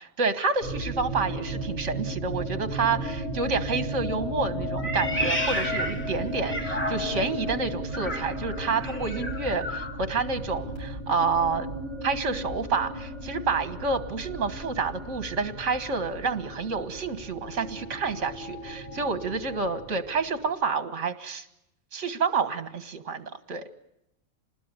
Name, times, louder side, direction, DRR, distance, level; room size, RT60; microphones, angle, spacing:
voice 1, 0.2-11.7 12.0-21.5 21.9-23.6, right 4 dB, 65° right, 10 dB, 1.9 m, -29 dB
sound 1, 0.6-20.4, equal, 65° left, 8.6 m, -35 dB
Meow, 4.8-7.3 7.9-10.0, equal, 10° left, 2.5 m, -32 dB
27.5 x 20.0 x 9.8 m, 0.87 s
omnidirectional pair, 1.4 m